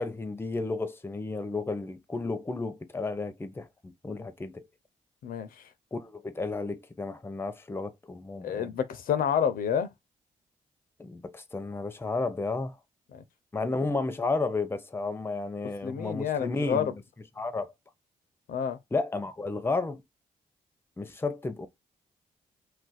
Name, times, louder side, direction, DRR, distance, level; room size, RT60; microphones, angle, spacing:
voice 1, 0.0-4.7 5.9-8.7 11.0-12.8 13.5-16.9 17.4-17.7 18.9-20.0 21.0-21.7, left 3 dB, 15° left, 0.5 m, -32 dB
voice 2, 8.4-9.9 13.1-13.2 15.8-16.9 18.5-18.8, left 8 dB, 70° left, 0.5 m, -28 dB
2.4 x 2.2 x 4.0 m
supercardioid pair, 60°, 15 cm